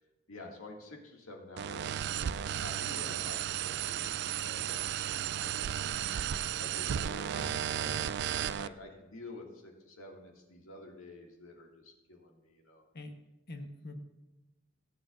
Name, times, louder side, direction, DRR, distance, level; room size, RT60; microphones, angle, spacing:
voice 1, 0.3-4.0 4.3-12.9, left 2 dB, 75° left, 0 dB, 2.3 m, -50 dB
sound 1, 1.6-8.7, right 10 dB, 55° right, 0.3 m, -34 dB
voice 2, 13.5-13.9, left 1 dB, 50° left, 5 dB, 1.2 m, -44 dB
21.5 x 7.8 x 2.6 m, 0.99 s
head